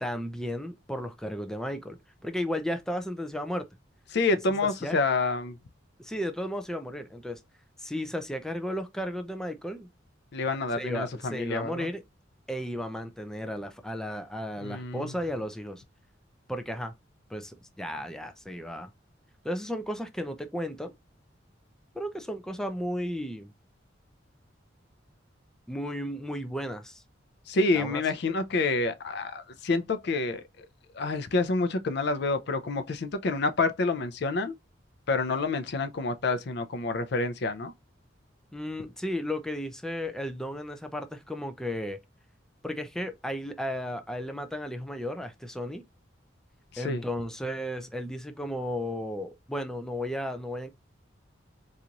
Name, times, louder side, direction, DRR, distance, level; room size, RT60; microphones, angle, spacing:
voice 1, 0.0-3.7 4.6-5.0 6.0-7.4 7.8-9.9 10.8-12.0 12.5-15.8 16.5-16.9 17.3-18.9 19.4-20.9 21.9-23.5 25.7-27.0 27.7-28.0 38.5-42.0 42.6-45.9 46.8-50.7, equal, 5° left, 0.4 m, -34 dB
voice 2, 4.1-5.6 10.3-11.9 14.6-15.1 27.5-30.7 30.9-34.5 35.1-37.7 46.7-47.0, left 3 dB, 60° left, 0.5 m, -28 dB
4.0 x 3.0 x 2.4 m
head